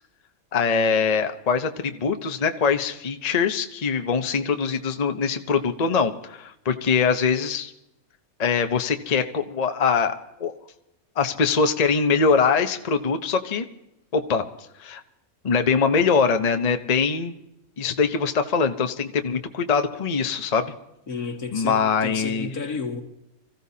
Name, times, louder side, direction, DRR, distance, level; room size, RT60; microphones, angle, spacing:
voice 1, 0.5-7.7 8.4-10.6 11.2-13.6 14.1-14.4 14.8-15.0 15.4-17.3 17.8-20.7 21.5-22.5, left 5 dB, 35° left, 0.8 m, -23 dB
voice 2, 21.1-23.0, left 4 dB, 80° left, 2.4 m, -32 dB
25.5 x 15.5 x 2.8 m
omnidirectional pair, 1.5 m